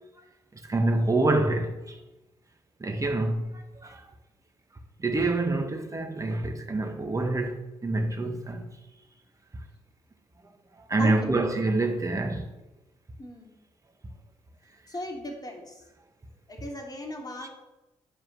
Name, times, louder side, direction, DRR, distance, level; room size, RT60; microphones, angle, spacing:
voice 1, 0.7-2.0 2.8-4.0 5.0-8.6 10.9-12.5, right 2 dB, 25° right, 1.5 m, -26 dB
voice 2, 11.0-11.4 13.2-13.5 14.9-15.8 16.5-17.5, left 1 dB, 30° left, 3.1 m, -36 dB
9.9 x 4.9 x 7.7 m
hypercardioid pair, 45°, 14 cm